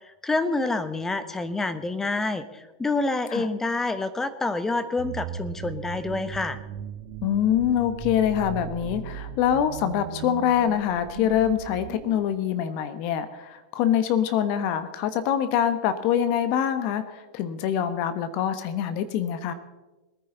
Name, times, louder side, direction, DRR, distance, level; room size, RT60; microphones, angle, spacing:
voice 1, 0.2-6.6, left 2 dB, 10° left, 12 dB, 1.0 m, -27 dB
sound 1, 5.0-12.2, right 9 dB, 60° right, 1.5 m, -37 dB
voice 2, 7.2-19.5, left 9 dB, 50° left, 11 dB, 1.2 m, -25 dB
21.5 x 9.8 x 4.0 m, 1.2 s
hypercardioid pair, 115°, 4 cm